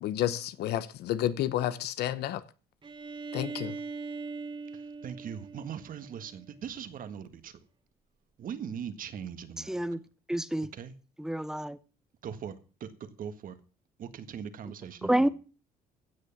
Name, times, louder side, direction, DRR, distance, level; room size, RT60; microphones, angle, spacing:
voice 1, 0.0-2.4 3.3-3.7, left 12 dB, 75° left, 1.0 m, -30 dB
Bowed string instrument, 2.8-6.6, right 4 dB, 30° right, 2.1 m, -41 dB
voice 2, 4.7-7.6 8.4-9.8 10.7-10.9 12.2-13.6 14.0-15.3, right 8 dB, 55° right, 1.6 m, -40 dB
voice 3, 9.7-10.0 10.3-10.7 11.2-11.8 15.0-15.3, right 1 dB, 5° right, 0.9 m, -28 dB
16.0 x 6.5 x 7.3 m
cardioid pair, 110°, 17 cm